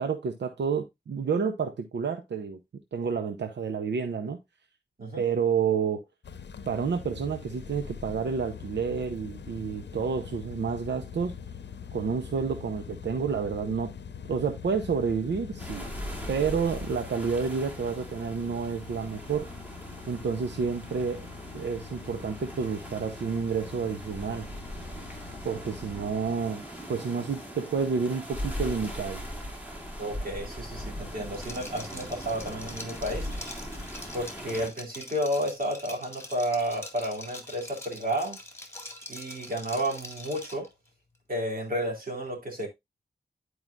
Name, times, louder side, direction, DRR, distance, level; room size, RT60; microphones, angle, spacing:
voice 1, 0.0-2.6 2.9-4.4 5.2-6.0 6.7-11.3 11.9-13.9 14.3-15.9 16.3-19.5 20.1-21.3 21.5-24.5 25.4-26.6 26.9-29.2, right 6 dB, 85° right, 0.7 m, -29 dB
sound 1, 6.2-26.1, left 6 dB, 90° left, 0.7 m, -43 dB
sound 2, 15.6-34.7, equal, 10° right, 2.1 m, -40 dB
voice 2, 30.0-33.3 34.1-38.4 39.1-40.7 41.3-42.7, equal, 55° right, 2.8 m, -31 dB
Liquid, 31.3-40.7, left 1 dB, 15° left, 1.8 m, -44 dB
11.0 x 4.8 x 2.5 m
wide cardioid pair, 105°, 18 cm